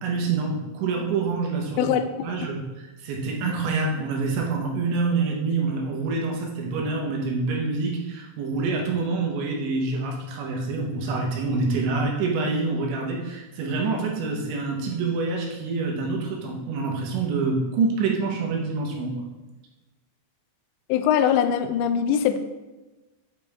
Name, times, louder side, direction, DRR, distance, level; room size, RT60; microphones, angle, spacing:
voice 1, 0.0-1.9 2.2-19.3, right 4 dB, 85° right, 0 dB, 3.6 m, -26 dB
voice 2, 1.8-2.3 20.9-22.4, left 8 dB, 90° left, 9 dB, 2.9 m, -22 dB
8.8 x 5.3 x 3.5 m, 1.1 s
omnidirectional pair, 5.0 m